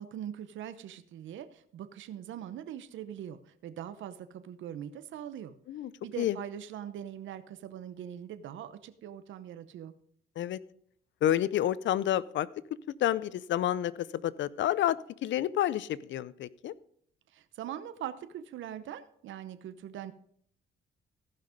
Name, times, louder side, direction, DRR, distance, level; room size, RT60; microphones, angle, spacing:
voice 1, 0.0-5.5 6.0-9.9 17.3-20.1, right 10 dB, 75° right, 11 dB, 0.8 m, -42 dB
voice 2, 11.2-12.5 13.0-16.7, left 12 dB, 70° left, 19 dB, 0.6 m, -29 dB
14.5 x 5.9 x 5.1 m, 0.65 s
cardioid pair, 90°, 20 cm